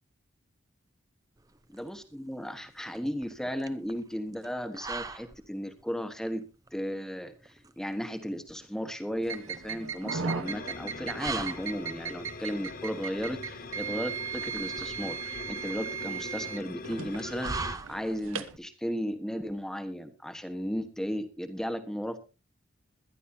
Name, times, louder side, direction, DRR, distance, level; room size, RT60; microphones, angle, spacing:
sound 1, 1.4-18.4, right 3 dB, 15° right, 0.7 m, -43 dB
voice 1, 1.7-6.4 6.7-22.2, equal, 5° left, 8 dB, 1.3 m, -35 dB
sound 2, 9.2-18.6, right 6 dB, 80° right, 1.2 m, -37 dB
sound 3, 10.4-17.8, left 4 dB, 45° left, 0.6 m, -42 dB
21.5 x 11.5 x 2.8 m, 0.31 s
head